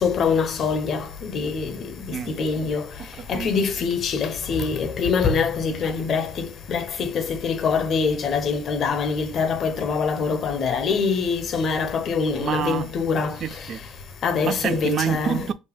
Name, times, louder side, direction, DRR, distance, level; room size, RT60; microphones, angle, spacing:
voice 1, 0.0-2.8 3.3-13.4 14.2-15.5, left 5 dB, 55° left, 0.8 m, -24 dB
voice 2, 3.0-3.5 12.4-12.9 13.4-13.8 14.4-15.5, right 9 dB, 55° right, 0.3 m, -27 dB
5.0 x 2.1 x 3.3 m
supercardioid pair, 75°, 0 cm